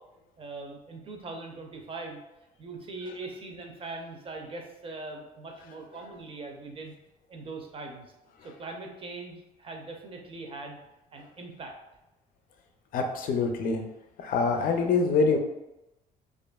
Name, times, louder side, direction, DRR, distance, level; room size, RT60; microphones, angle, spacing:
voice 1, 0.4-2.2 2.6-6.9 7.3-8.1 8.4-10.8 11.1-11.7, right 3 dB, 35° right, 2 dB, 0.5 m, -41 dB
voice 2, 12.9-13.8 14.2-15.4, left 4 dB, 55° left, 4 dB, 0.4 m, -25 dB
2.6 x 2.4 x 2.2 m, 0.94 s
cardioid pair, 110°, 17 cm